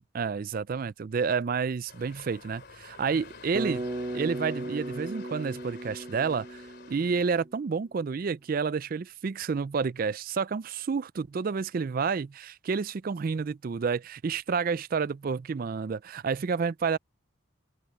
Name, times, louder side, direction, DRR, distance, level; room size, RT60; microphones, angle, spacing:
voice 1, 0.1-3.9 4.1-6.6 6.9-17.0, right 5 dB, 40° right, 0.3 m, -30 dB
sound 1, 1.9-7.5, left 4 dB, 50° left, 3.4 m, -49 dB
Bass guitar, 3.5-7.7, right 1 dB, 25° right, 0.8 m, -36 dB
head